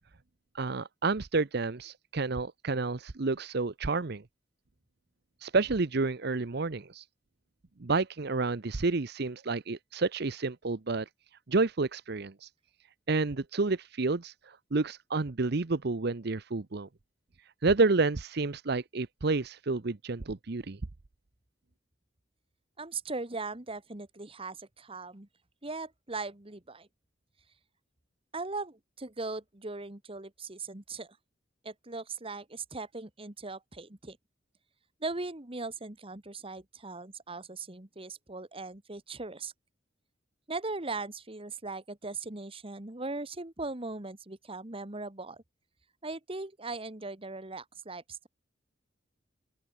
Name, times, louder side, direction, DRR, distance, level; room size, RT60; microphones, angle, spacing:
voice 1, 0.5-4.2 5.4-7.0 7.8-11.1 11.5-12.5 13.1-16.9 17.6-20.8, right 3 dB, 55° right, 0.8 m, -30 dB
voice 2, 22.8-25.3 25.6-26.9 28.3-31.2 31.6-34.2 35.0-39.5 40.5-45.4 46.0-48.3, right 3 dB, 30° right, 1.6 m, -39 dB
open air
head